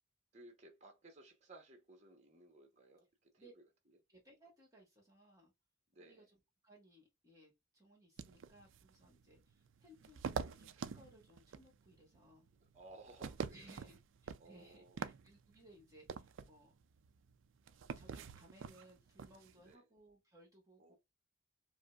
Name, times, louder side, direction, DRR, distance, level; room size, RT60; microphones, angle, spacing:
voice 1, 0.3-4.0 5.9-6.3 12.7-13.9 14.4-15.0 19.6-19.9 20.8-20.9, right 2 dB, 35° right, 0.9 m, -59 dB
voice 2, 4.1-5.5 6.0-12.5 13.5-14.8 15.2-16.8 18.0-21.0, right 1 dB, 15° right, 1.4 m, -63 dB
sound 1, 8.2-19.7, right 6 dB, 75° right, 0.4 m, -47 dB
4.9 x 2.0 x 2.3 m
head